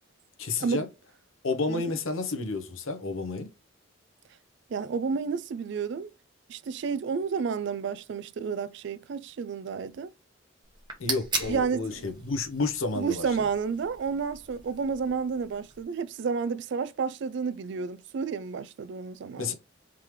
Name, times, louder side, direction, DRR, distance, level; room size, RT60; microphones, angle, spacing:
voice 1, 0.4-0.9 1.4-3.5 11.0-13.2 19.3-19.5, left 3 dB, 75° left, 0.9 m, -30 dB
voice 2, 4.7-6.1 6.5-10.1 11.5-12.0 13.0-19.5, right 5 dB, 55° right, 0.3 m, -31 dB
sound 1, 10.6-15.8, right 3 dB, 20° right, 1.0 m, -39 dB
3.6 x 3.1 x 3.2 m
head